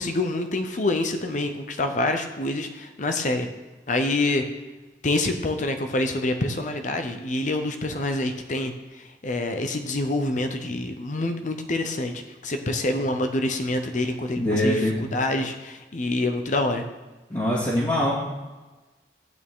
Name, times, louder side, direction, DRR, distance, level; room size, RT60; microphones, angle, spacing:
voice 1, 0.0-3.5 3.9-4.4 5.0-8.7 9.2-14.8 15.1-16.8, left 2 dB, 45° left, 6 dB, 0.8 m, -26 dB
voice 2, 14.4-15.0 17.3-18.1, left 1 dB, 25° left, -9 dB, 2.3 m, -23 dB
13.5 x 8.7 x 3.7 m, 1.2 s
head